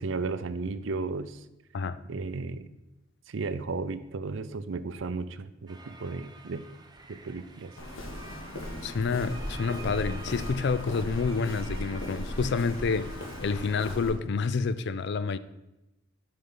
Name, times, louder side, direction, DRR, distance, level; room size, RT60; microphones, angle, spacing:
voice 1, 0.0-1.4 2.1-2.7 3.3-6.6 7.1-7.7, right 4 dB, 65° right, 0.5 m, -34 dB
sound 1, 5.7-13.9, right 3 dB, 20° right, 0.7 m, -49 dB
Walk footsteps, 7.8-14.1, left 1 dB, 90° left, 1.8 m, -37 dB
voice 2, 8.8-15.4, left 4 dB, 60° left, 0.4 m, -29 dB
7.7 x 5.2 x 5.5 m
head